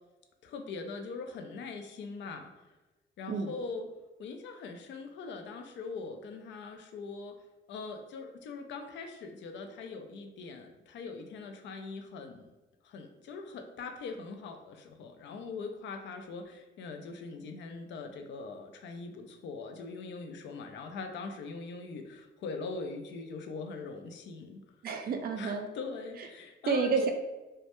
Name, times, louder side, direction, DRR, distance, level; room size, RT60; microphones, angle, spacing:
voice 1, 0.4-2.7 3.2-3.9 4.2-7.3 7.7-12.5 12.8-24.6 25.4-26.9, left 4 dB, 65° left, 6 dB, 0.4 m, -42 dB
voice 2, 24.8-25.7 26.7-27.1, right 5 dB, 50° right, 5 dB, 0.4 m, -29 dB
2.1 x 2.1 x 2.9 m, 1.1 s
cardioid pair, 90°, 20 cm